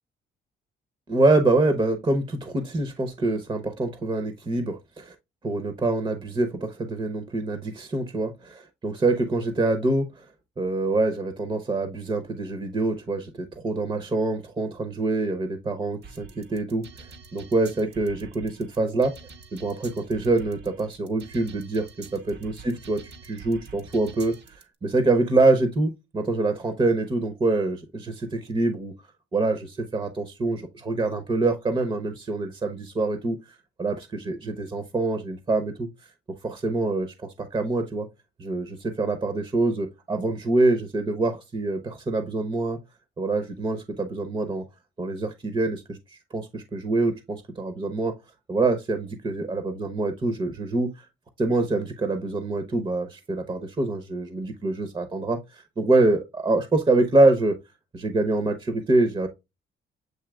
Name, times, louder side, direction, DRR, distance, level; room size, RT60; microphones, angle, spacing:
voice 1, 1.1-5.1 5.4-8.3 8.8-10.3 10.6-16.8 17.3-19.1 19.5-24.3 24.8-28.9 29.3-33.4 33.8-35.9 36.4-38.1 38.4-42.8 43.2-44.6 45.0-46.0 46.3-48.1 48.5-51.1 51.4-57.6 57.9-59.3, right 2 dB, 25° right, 0.8 m, -25 dB
sound 1, 16.0-24.6, right 4 dB, 60° right, 0.9 m, -46 dB
7.9 x 2.7 x 2.3 m
cardioid pair, 90°, 20 cm